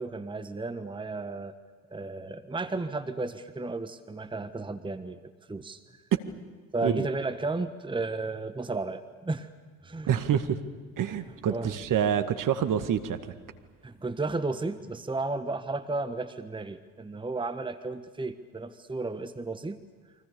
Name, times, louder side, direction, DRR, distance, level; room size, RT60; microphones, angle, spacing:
voice 1, 0.0-1.5 1.9-6.0 6.7-9.5 9.8-10.1 11.3-11.8 13.8-19.8, right 3 dB, 10° right, 11 dB, 1.3 m, -33 dB
voice 2, 10.0-10.6 11.0-13.2, right 9 dB, 45° right, 9 dB, 2.0 m, -26 dB
29.5 x 24.0 x 7.0 m, 1.4 s
hypercardioid pair, 60°, 42 cm